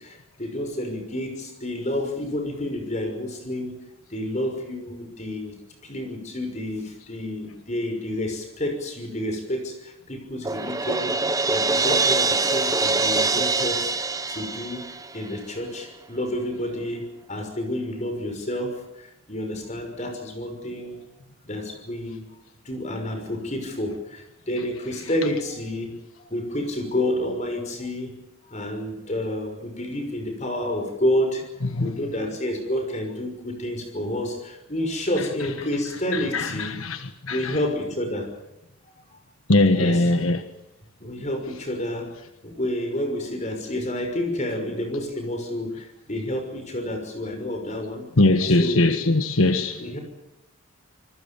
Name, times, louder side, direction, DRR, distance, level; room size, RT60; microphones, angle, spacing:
voice 1, 0.0-3.7 4.1-5.5 5.8-11.2 11.5-13.9 14.3-14.8 15.1-21.0 21.4-22.2 22.6-28.2 28.5-31.5 31.7-36.7 37.3-38.3 39.7-40.1 41.0-42.2 42.4-48.1 48.5-48.8 49.8-50.0, left 1 dB, 35° left, 6.1 m, -29 dB
Crash cymbal, 10.4-15.4, right 3 dB, 15° right, 0.9 m, -24 dB
voice 2, 36.1-37.0 37.3-37.5 39.5-40.4 48.2-49.8, left 2 dB, 85° left, 1.4 m, -20 dB
27.0 x 21.0 x 7.2 m
head